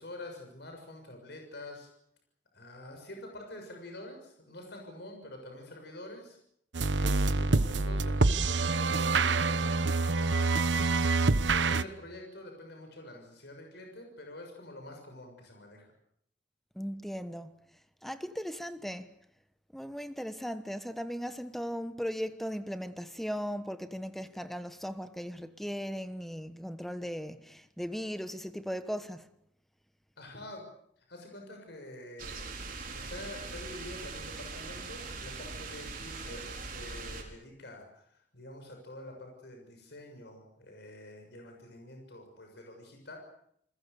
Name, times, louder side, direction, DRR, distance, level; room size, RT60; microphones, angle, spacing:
voice 1, 0.0-1.9 2.5-6.4 6.9-9.9 10.2-11.1 11.5-15.8 30.2-30.6 31.0-32.4 32.9-43.2, left 1 dB, 65° left, 6.8 m, -47 dB
sound 1, 6.7-11.8, right 3 dB, 75° right, 1.0 m, -26 dB
voice 2, 16.7-17.6 18.0-19.1 19.7-29.3, equal, ahead, 1.2 m, -37 dB
sound 2, 32.2-37.2, right 4 dB, 50° right, 4.6 m, -41 dB
29.0 x 21.0 x 6.9 m
head